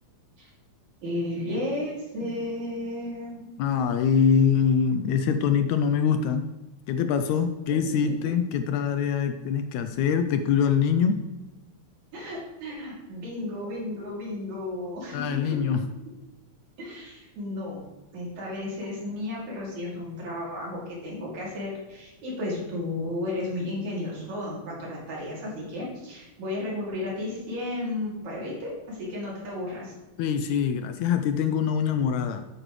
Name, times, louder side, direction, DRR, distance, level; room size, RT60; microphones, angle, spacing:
voice 1, 1.0-3.5 8.1-8.3 12.1-15.7 16.8-17.8 18.1-29.9, left 1 dB, 65° right, -5 dB, 4.1 m, -33 dB
voice 2, 3.6-6.4 6.9-11.2 15.1-15.8 30.2-32.4, left 7 dB, 80° left, 8 dB, 1.8 m, -24 dB
9.0 x 8.6 x 3.2 m, 1.1 s
omnidirectional pair, 3.5 m